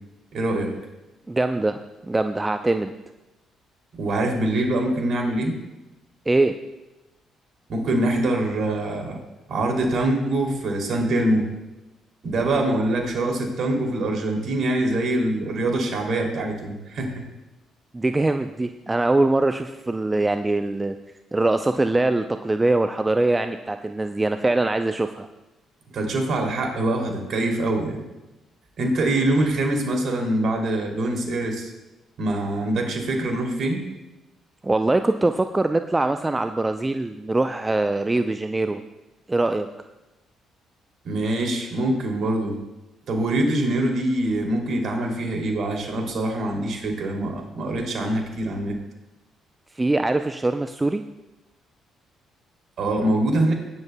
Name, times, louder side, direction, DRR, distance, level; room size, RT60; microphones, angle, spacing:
voice 1, 0.3-0.7 3.9-5.6 7.7-9.2 9.5-11.5 12.2-17.2 25.9-28.0 28.8-31.7 32.2-33.9 41.0-42.6 43.1-48.8 52.8-53.5, right 1 dB, 55° right, 1 dB, 2.9 m, -24 dB
voice 2, 1.3-2.9 6.3-6.5 17.9-21.0 21.3-25.3 34.6-38.8 39.3-39.7 49.8-51.0, right 2 dB, 20° right, 8 dB, 0.5 m, -22 dB
19.0 x 10.5 x 2.3 m, 1.0 s
hypercardioid pair, 45°, 0 cm